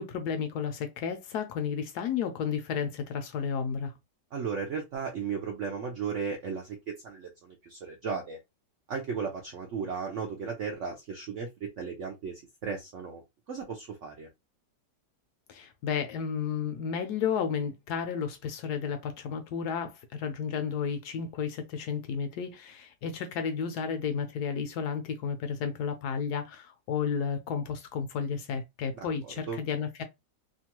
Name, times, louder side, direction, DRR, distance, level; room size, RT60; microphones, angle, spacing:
voice 1, 0.0-3.9 15.5-30.0, left 6 dB, 70° left, 1.0 m, -32 dB
voice 2, 4.3-6.8 7.0-8.4 8.9-11.5 11.8-13.2 13.5-14.3 28.9-29.6, right 5 dB, 70° right, 0.7 m, -35 dB
2.9 x 2.3 x 2.9 m
omnidirectional pair, 1.9 m